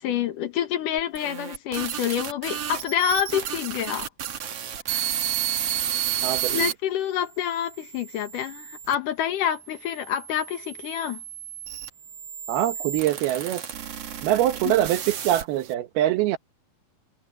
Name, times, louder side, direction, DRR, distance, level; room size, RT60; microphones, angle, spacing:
voice 1, 0.0-4.1 4.9-5.1 5.5-6.0 6.5-11.2 14.6-14.7, left 10 dB, 65° left, 2.7 m, -28 dB
sound 1, 1.0-6.7 7.4-8.9 9.7-15.7, right 10 dB, 50° right, 2.1 m, -32 dB
voice 2, 6.2-6.7 12.5-13.6 14.2-16.4, right 13 dB, 80° right, 3.1 m, -24 dB
omnidirectional pair, 4.4 m